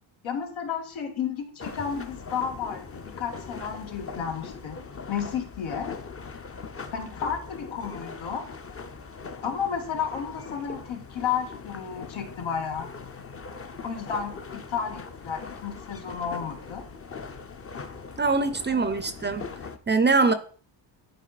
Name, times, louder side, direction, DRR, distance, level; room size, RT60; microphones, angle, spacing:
voice 1, 0.2-4.8 5.1-5.9 6.9-8.5 9.4-12.9 13.8-16.8 18.7-18.9, left 7 dB, 80° left, 4 dB, 1.8 m, -32 dB
sound 1, 1.6-19.8, left 5 dB, 30° left, 0.7 m, -41 dB
voice 2, 18.2-19.5 19.9-20.3, right 3 dB, 25° right, 11 dB, 0.5 m, -23 dB
11.0 x 4.6 x 4.1 m, 0.42 s
cardioid pair, 130°, 48 cm